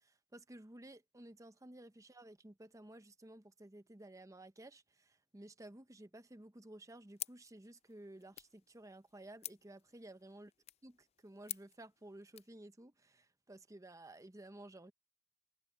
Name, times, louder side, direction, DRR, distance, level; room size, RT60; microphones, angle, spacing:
voice 1, 0.0-10.5 10.8-14.9, right 1 dB, 15° right, 0.8 m, -55 dB
sound 1, 7.2-12.6, left 14 dB, 30° left, 0.3 m, -51 dB
head